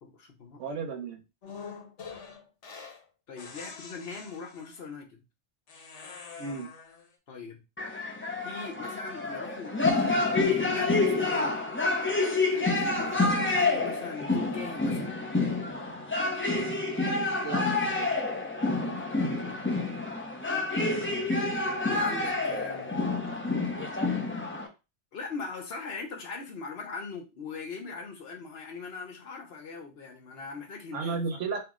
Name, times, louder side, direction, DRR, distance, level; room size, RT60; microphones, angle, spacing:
voice 1, 0.0-0.6 3.3-5.2 7.3-7.6 8.4-11.6 12.5-15.2 18.7-19.6 20.5-21.3 21.6-22.9 25.1-31.4, left 4 dB, 60° left, 1.0 m, -41 dB
voice 2, 0.6-1.2 6.4-6.7 16.6-16.8 17.4-18.1 30.9-31.6, right 4 dB, 85° right, 1.1 m, -34 dB
sound 1, 1.4-3.0 3.4-4.8 5.7-7.1, left 5 dB, 75° left, 1.2 m, -45 dB
sound 2, 7.8-24.7, left 3 dB, 15° left, 0.4 m, -28 dB
3.0 x 2.9 x 3.6 m
omnidirectional pair, 1.2 m